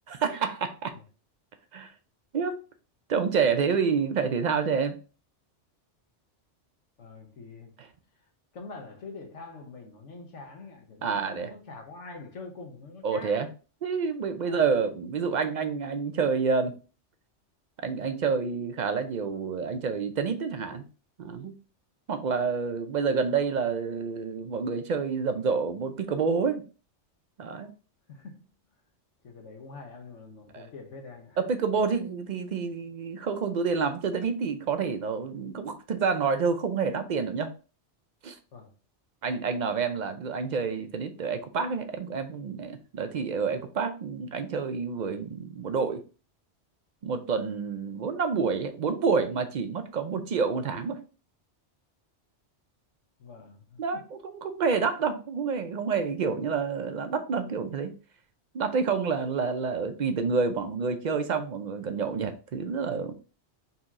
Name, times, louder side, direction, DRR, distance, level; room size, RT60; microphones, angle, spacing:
voice 1, 0.2-0.9 1.7-1.9 2.3-2.6 3.1-5.0 11.0-11.5 13.0-13.5 13.8-16.8 17.8-20.8 21.2-21.5 22.1-26.6 27.4-27.7 30.5-30.7 31.4-37.5 38.2-38.4 39.2-46.0 47.0-51.0 53.8-57.9 58.5-63.1, right 5 dB, 60° right, 0.5 m, -28 dB
voice 2, 7.0-7.7 8.5-13.4 14.4-14.6 28.1-28.5 29.2-31.4 38.5-38.7 53.2-54.0, left 3 dB, 90° left, 1.3 m, -45 dB
4.2 x 2.9 x 3.6 m
omnidirectional pair, 1.2 m